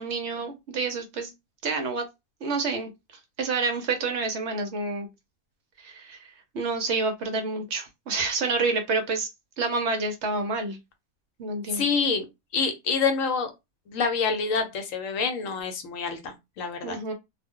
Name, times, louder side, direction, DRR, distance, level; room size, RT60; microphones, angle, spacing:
voice 1, 0.0-1.3 1.6-2.0 2.4-2.9 3.4-5.1 5.8-6.3 6.5-9.3 9.6-10.8 11.4-11.8 16.8-17.1, right 3 dB, 65° right, 0.8 m, -28 dB
voice 2, 11.7-12.2 12.5-13.5 13.9-17.0, left 5 dB, 70° left, 1.0 m, -27 dB
2.4 x 2.0 x 3.6 m
omnidirectional pair, 1.5 m